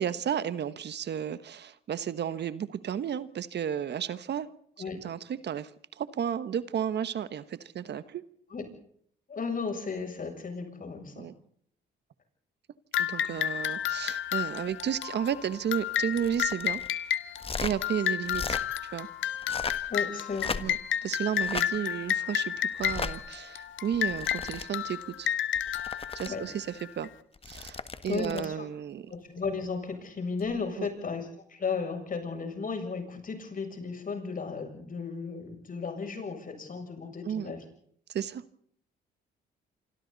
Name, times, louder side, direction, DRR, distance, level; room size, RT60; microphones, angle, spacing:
voice 1, 0.0-4.5 5.0-5.7 6.0-8.2 11.2-11.3 13.0-16.8 17.6-19.1 19.7-19.9 20.6-25.3 26.1-27.1 27.4-29.1 30.8-30.9 37.2-37.5 38.1-38.4, right 9 dB, 60° right, 14 dB, 1.3 m, -33 dB
voice 2, 9.3-11.3 13.2-13.4 19.9-20.6 26.2-26.5 28.1-28.7 29.1-37.6, left 4 dB, 45° left, 5 dB, 7.3 m, -35 dB
sound 1, 12.9-27.1, left 10 dB, 75° left, 1.5 m, -32 dB
sound 2, 16.1-16.9 17.4-17.8 18.2-18.6 19.3-19.9 20.3-20.9 21.3-21.7 22.8-23.1 23.9-24.7 25.5-26.3 27.3-28.5 30.4-30.6, left 4 dB, 30° left, 1.6 m, -36 dB
27.0 x 25.5 x 4.1 m, 0.63 s
cardioid pair, 90°, 20 cm